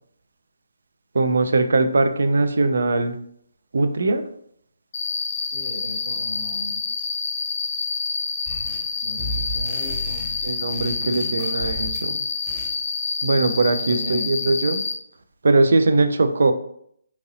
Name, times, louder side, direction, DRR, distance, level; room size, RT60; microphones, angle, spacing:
voice 1, 1.1-3.2 3.7-4.3 10.4-12.2 13.2-14.8 15.4-16.5, right 3 dB, 65° right, 9 dB, 0.3 m, -20 dB
Cricket, 4.9-14.9, left 4 dB, 40° left, 0.5 m, -28 dB
voice 2, 5.4-6.8 8.6-10.3 10.9-11.4 13.8-14.5, equal, 85° right, -1 dB, 1.0 m, -37 dB
sound 1, 8.5-8.9 9.2-12.1 12.5-12.8, equal, 5° left, 0.7 m, -34 dB
2.9 x 2.6 x 2.8 m, 0.68 s
figure-of-eight pair, 150°, 0 cm